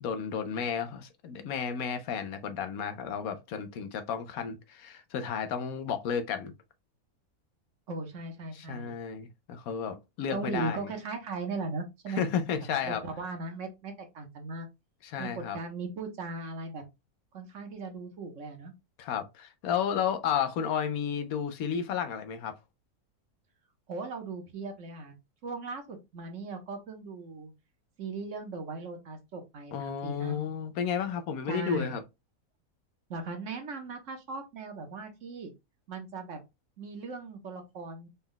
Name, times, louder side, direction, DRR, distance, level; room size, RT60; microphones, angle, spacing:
voice 1, 0.0-6.5 8.5-10.8 12.1-13.0 15.0-15.6 19.0-22.6 29.7-32.0, left 7 dB, 75° left, 1.0 m, -32 dB
voice 2, 7.9-9.0 10.3-12.2 12.6-14.7 15.2-16.8 17.3-18.7 23.9-25.1 25.4-27.5 28.0-30.5 31.5-32.0 33.1-35.5 35.9-36.4 36.8-38.1, right 3 dB, 60° right, 1.1 m, -38 dB
4.1 x 2.2 x 3.7 m
omnidirectional pair, 1.6 m